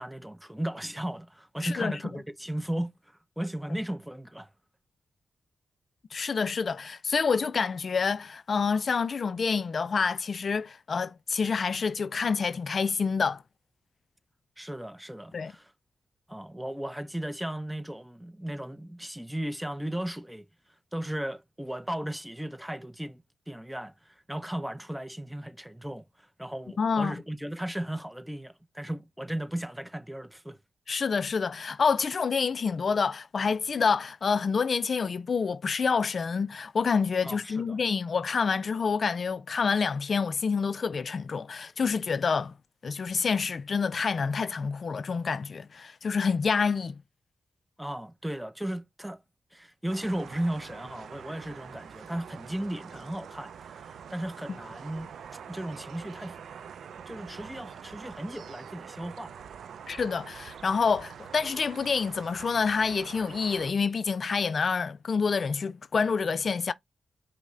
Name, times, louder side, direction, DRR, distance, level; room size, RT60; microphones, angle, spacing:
voice 1, 0.0-2.9 3.4-4.5 14.6-15.7 16.3-20.5 20.9-23.2 23.5-30.6 37.2-37.8 47.8-49.2 49.5-55.1 55.5-56.4 57.1-59.3, right 1 dB, 5° right, 0.6 m, -36 dB
voice 2, 1.6-2.0 6.1-13.4 15.3-15.5 26.8-27.1 30.9-42.5 42.8-46.9 59.9-66.7, left 5 dB, 60° left, 0.3 m, -27 dB
sound 1, 49.9-63.7, right 7 dB, 80° right, 0.4 m, -45 dB
5.3 x 2.1 x 3.6 m
cardioid pair, 55°, 0 cm